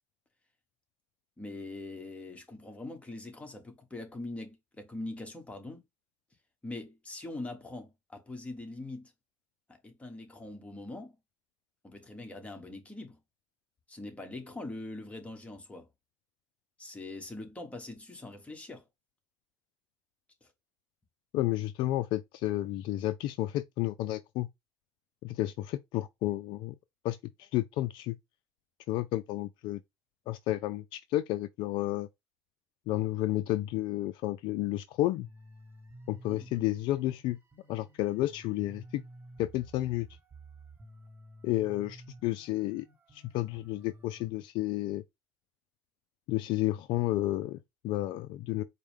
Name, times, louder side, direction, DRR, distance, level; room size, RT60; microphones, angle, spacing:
voice 1, 1.4-5.8 6.6-9.1 9.7-11.1 11.8-13.2 13.9-15.9 16.8-18.9 20.4-20.5 36.3-36.5, left 2 dB, 15° left, 1.3 m, -42 dB
voice 2, 21.3-24.5 25.2-26.7 27.0-28.2 28.9-29.8 30.3-32.1 32.9-35.3 36.1-37.4 37.7-39.0 39.4-40.1 41.4-42.9 43.1-45.0 46.3-48.6, left 16 dB, 70° left, 0.3 m, -31 dB
sound 1, 35.2-44.3, right 1 dB, 25° right, 1.3 m, -53 dB
4.4 x 2.2 x 3.5 m
supercardioid pair, 80°, 9 cm